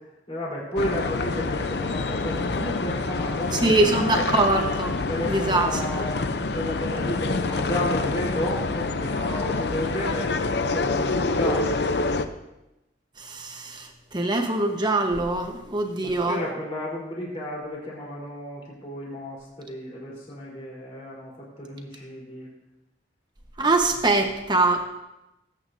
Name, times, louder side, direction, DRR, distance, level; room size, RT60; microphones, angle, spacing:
voice 1, 0.3-4.3 5.1-10.3 10.7-11.9 16.0-22.5, left 1 dB, 35° left, -5 dB, 3.8 m, -32 dB
sound 1, 0.8-12.3, left 3 dB, 65° left, 0.6 m, -27 dB
voice 2, 3.5-4.9 5.2-5.7 13.3-13.9 14.1-16.4 23.6-24.9, right 2 dB, 25° right, 4 dB, 1.1 m, -23 dB
20.0 x 8.8 x 2.7 m, 0.95 s
head